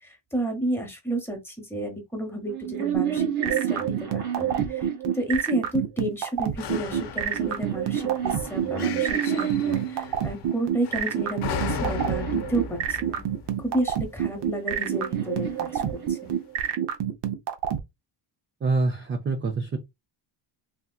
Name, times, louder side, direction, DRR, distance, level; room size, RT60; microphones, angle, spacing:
voice 1, 0.3-4.9 5.1-13.2 13.6-15.8 16.1-16.2, right 1 dB, 5° left, 0.9 m, -31 dB
sound 1, 2.4-5.8 6.7-10.1 10.8-13.2 14.3-16.7, right 9 dB, 80° right, 1.3 m, -31 dB
sound 2, 2.9-17.8, right 9 dB, 60° right, 0.7 m, -26 dB
sound 3, 6.6-14.8 15.6-15.7, left 6 dB, 55° left, 0.7 m, -37 dB
voice 2, 18.6-19.8, right 3 dB, 25° right, 0.4 m, -25 dB
3.6 x 2.7 x 2.3 m
wide cardioid pair, 160°, 48 cm